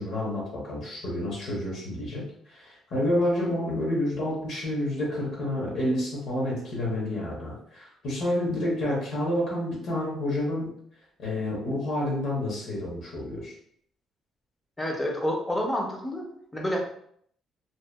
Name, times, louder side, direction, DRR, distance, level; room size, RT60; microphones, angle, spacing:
voice 1, 0.0-10.7 11.2-13.5, left 1 dB, 60° left, -3 dB, 0.8 m, -29 dB
voice 2, 14.8-16.2 16.5-16.8, equal, 10° left, 0 dB, 0.5 m, -28 dB
2.7 x 2.2 x 2.2 m, 0.64 s
cardioid pair, 155°, 0 cm